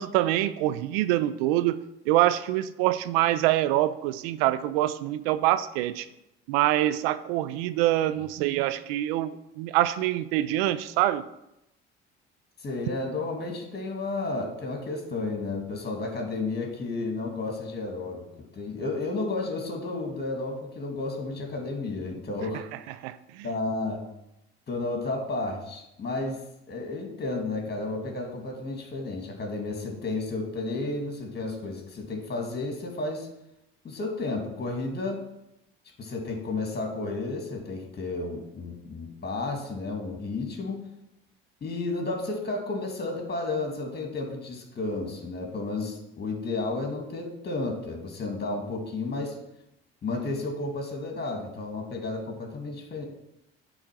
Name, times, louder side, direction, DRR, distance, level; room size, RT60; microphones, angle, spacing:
voice 1, 0.0-6.1 6.5-11.3 23.0-23.5, right 14 dB, 75° right, 0.5 m, -25 dB
voice 2, 12.6-18.3 18.5-22.6 23.4-24.0 24.7-26.4 26.7-33.3 33.8-35.2 36.0-40.8 41.6-49.4 50.0-53.0, left 3 dB, 35° left, 2.4 m, -32 dB
8.8 x 3.9 x 6.0 m
hypercardioid pair, 60°, 30 cm